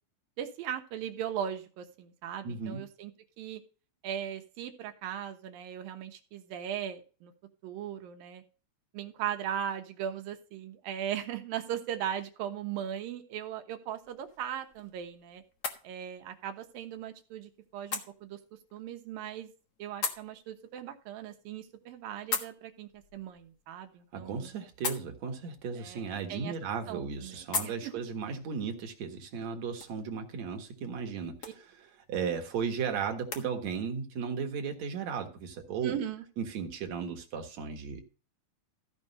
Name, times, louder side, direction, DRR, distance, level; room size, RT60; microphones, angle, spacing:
voice 1, 0.4-3.1 3.4-3.6 4.0-7.3 7.6-8.4 8.9-15.4 15.8-18.4 18.7-19.5 19.8-24.5 25.8-26.5 26.9-27.9 31.4-31.5 35.8-36.2, right 10 dB, 75° right, 6 dB, 2.9 m, -38 dB
voice 2, 2.4-2.8 24.1-31.6 32.1-36.0 36.4-38.0, right 6 dB, 55° right, 4 dB, 2.5 m, -35 dB
sound 1, 14.0-33.5, left 5 dB, 70° left, 0.9 m, -43 dB
14.5 x 5.2 x 5.4 m, 0.37 s
omnidirectional pair, 4.2 m